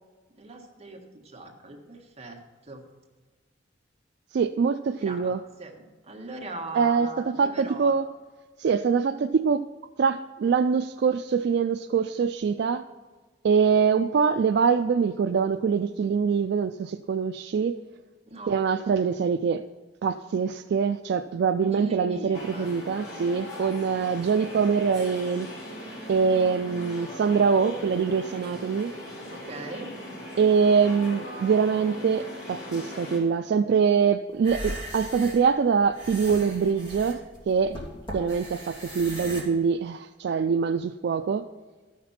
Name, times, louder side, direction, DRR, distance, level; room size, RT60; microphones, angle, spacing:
voice 1, 0.3-2.8 5.0-5.3 5.6-7.9 18.3-18.5 21.7-22.7 29.3-29.9, right 2 dB, 35° right, 0 dB, 1.5 m, -40 dB
voice 2, 4.3-5.4 6.7-8.0 8.6-9.6 10.0-12.8 13.4-17.8 18.5-19.6 20.0-25.5 26.1-28.9 30.4-37.8 38.1-41.4, right 6 dB, 60° right, 9 dB, 0.3 m, -24 dB
sound 1, 22.3-33.2, left 1 dB, 70° left, 3.5 m, -39 dB
sound 2, 34.4-39.4, right 1 dB, 25° left, 3.1 m, -38 dB
12.5 x 5.9 x 5.7 m, 1.4 s
head